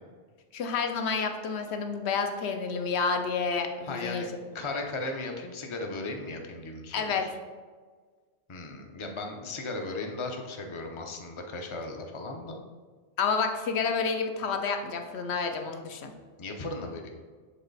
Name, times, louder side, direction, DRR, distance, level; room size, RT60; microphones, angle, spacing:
voice 1, 0.5-4.2 6.9-7.3 13.2-16.1, left 5 dB, 65° left, 5 dB, 0.9 m, -29 dB
voice 2, 3.8-4.3 4.5-7.3 8.5-12.6 16.4-17.1, left 2 dB, 35° left, 3 dB, 0.6 m, -36 dB
7.4 x 3.9 x 4.0 m, 1.5 s
omnidirectional pair, 1.2 m